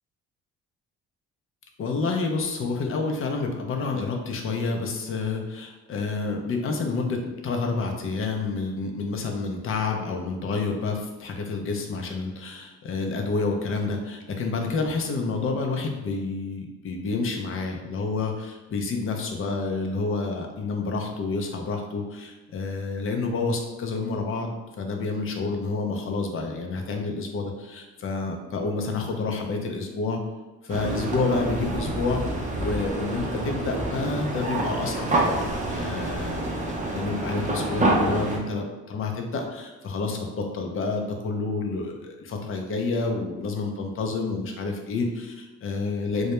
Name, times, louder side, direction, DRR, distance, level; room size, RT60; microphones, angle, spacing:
voice 1, 1.8-30.2 30.6-32.2 32.6-35.4 35.7-46.3, left 3 dB, 45° left, 3 dB, 0.5 m, -29 dB
sound 1, 30.7-38.4, right 2 dB, 25° right, 0.5 m, -27 dB
2.2 x 2.1 x 2.9 m, 1.2 s
cardioid pair, 90°, 30 cm